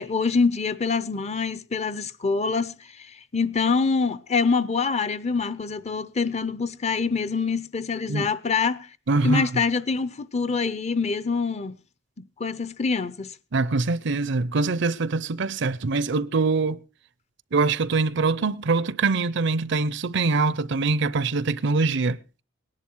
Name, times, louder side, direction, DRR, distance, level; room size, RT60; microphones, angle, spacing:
voice 1, 0.0-8.9 9.2-11.8 12.4-13.3, left 4 dB, 35° left, 0.7 m, -25 dB
voice 2, 9.1-9.5 13.5-16.8 17.5-22.2, right 3 dB, 65° right, 0.6 m, -23 dB
19.0 x 10.5 x 4.5 m
head